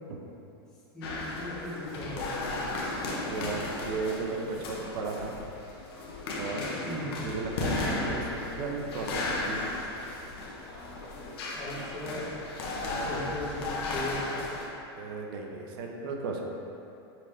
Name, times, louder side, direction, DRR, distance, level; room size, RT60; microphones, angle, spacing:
voice 1, 0.9-2.6 6.8-7.1 11.5-12.2 13.0-14.2, left 1 dB, 5° left, -11 dB, 1.0 m, -38 dB
sound 1, 1.0-14.7, left 2 dB, 75° left, 0.8 m, -35 dB
voice 2, 3.3-5.4 6.4-6.6 7.2-9.7 12.8-13.4 15.0-16.4, right 4 dB, 60° right, 1 dB, 0.6 m, -35 dB
5.8 x 2.5 x 3.4 m, 2.8 s
supercardioid pair, 145°, 13 cm